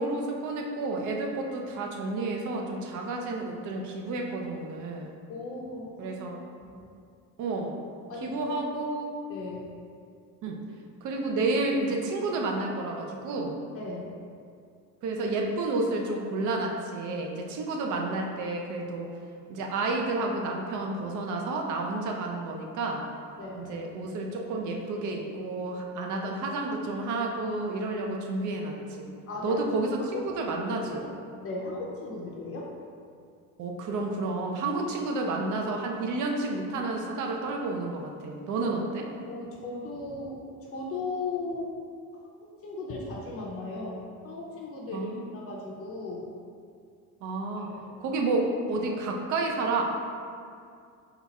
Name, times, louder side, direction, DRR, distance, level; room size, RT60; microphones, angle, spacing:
voice 1, 0.0-5.1 6.0-6.4 7.4-7.8 8.2-9.1 10.4-10.6 11.0-13.6 15.0-19.1 19.5-23.0 23.5-29.1 29.4-31.1 33.6-39.1 44.9-45.3 47.2-47.7 48.0-49.8, right 2 dB, 65° right, 1 dB, 0.6 m, -30 dB
voice 2, 5.3-6.2 6.6-6.8 8.1-8.6 9.3-9.8 13.7-14.2 23.4-23.6 29.3-29.6 30.1-30.2 30.9-31.1 31.4-32.7 39.3-40.4 40.7-41.7 42.4-46.3 47.7-47.9, left 3 dB, 45° left, -3 dB, 0.6 m, -37 dB
3.9 x 2.4 x 4.1 m, 2.3 s
cardioid pair, 155°, 32 cm